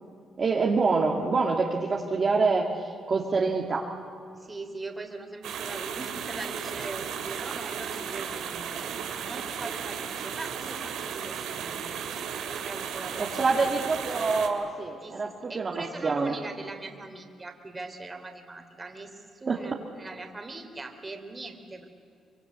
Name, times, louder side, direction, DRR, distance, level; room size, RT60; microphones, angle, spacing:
voice 1, 0.4-3.9 13.3-15.7 16.0-16.4 19.5-19.6, right 4 dB, 40° right, -1 dB, 2.3 m, -26 dB
voice 2, 4.4-12.0 12.5-13.6 15.0-21.9, right 2 dB, 25° right, 6 dB, 3.2 m, -41 dB
sound 1, 5.4-14.5, right 7 dB, 80° right, 2.4 m, -35 dB
25.0 x 24.0 x 8.3 m, 2.3 s
cardioid pair, 90°, 0 cm